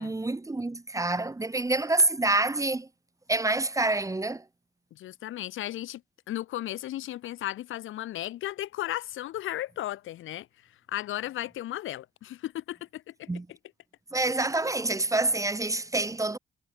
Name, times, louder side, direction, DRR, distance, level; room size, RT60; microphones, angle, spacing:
voice 1, 0.0-2.9 3.3-4.4 13.3-13.4 14.1-16.4, right 2 dB, 15° right, 1.8 m, -27 dB
voice 2, 4.9-6.0 6.3-13.3, left 14 dB, 80° left, 4.9 m, -35 dB
cardioid pair, 90°, 20 cm